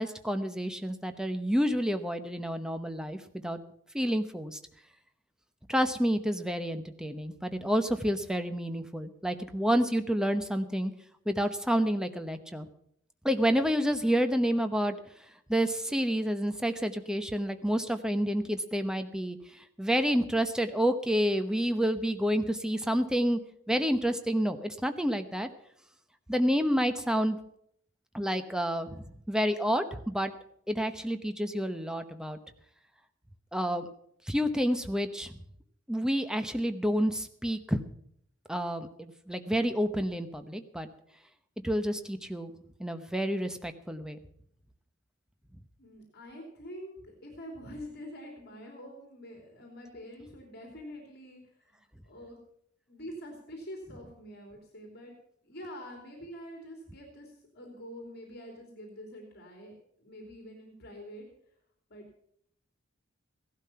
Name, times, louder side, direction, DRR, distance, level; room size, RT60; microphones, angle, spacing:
voice 1, 0.0-3.6 3.9-4.6 5.7-10.9 11.3-12.7 13.2-15.0 15.5-19.4 19.8-23.4 23.7-25.5 26.3-27.4 28.1-30.3 30.7-32.4 33.5-33.9 34.3-35.3 35.9-37.8 38.5-40.9 41.6-42.5 42.8-44.2, equal, 5° right, 8 dB, 0.9 m, -29 dB
voice 2, 45.8-51.4 52.0-52.4 52.9-55.1 55.4-61.2 61.9-62.0, equal, 55° left, 2 dB, 3.1 m, -46 dB
16.5 x 12.0 x 5.7 m, 0.69 s
head